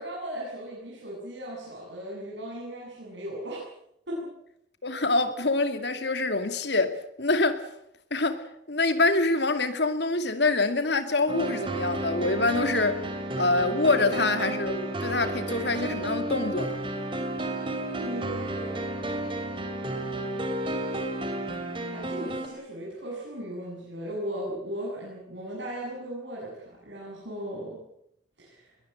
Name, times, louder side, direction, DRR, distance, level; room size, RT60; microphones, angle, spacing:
voice 1, 0.0-3.6 4.1-4.3 17.9-18.8 21.9-27.8 28.4-28.7, equal, 75° right, 7.9 m, -37 dB
voice 2, 4.8-7.6 8.1-13.0 13.4-16.8, left 3 dB, 65° left, 2.4 m, -25 dB
sound 1, 11.3-22.5, right 1 dB, 25° right, 2.9 m, -32 dB
22.0 x 19.0 x 8.9 m
head